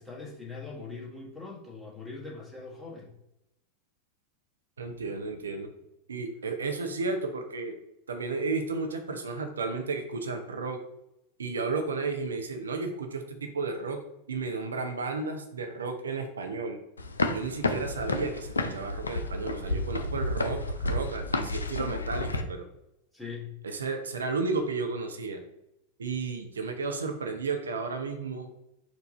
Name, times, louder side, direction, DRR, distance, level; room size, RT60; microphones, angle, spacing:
voice 1, 0.0-3.1 23.1-23.5, left 4 dB, 5° left, -5 dB, 1.6 m, -41 dB
voice 2, 4.8-5.7 6.1-7.8 8.1-10.8 11.4-14.0 14.3-16.8 17.3-22.6 23.6-25.4 26.0-28.5, right 4 dB, 70° right, 5 dB, 0.5 m, -33 dB
sound 1, 17.0-22.4, left 2 dB, 75° left, 0.4 m, -31 dB
4.5 x 2.6 x 4.1 m, 0.86 s
figure-of-eight pair, 90°, 0 cm